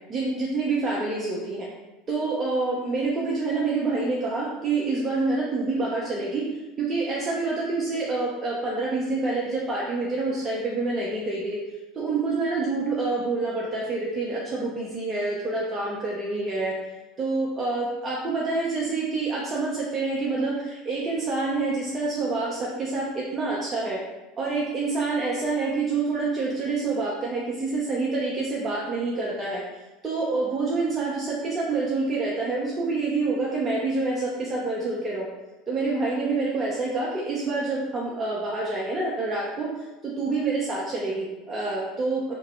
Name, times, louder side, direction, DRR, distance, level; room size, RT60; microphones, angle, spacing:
voice 1, 0.1-1.7 2.1-6.4 6.8-11.6 11.9-16.7 17.2-24.0 24.4-29.6 30.0-35.3 35.7-42.4, right 3 dB, 30° right, -5 dB, 0.5 m, -27 dB
2.8 x 2.1 x 3.1 m, 1.1 s
figure-of-eight pair, 75°, 0 cm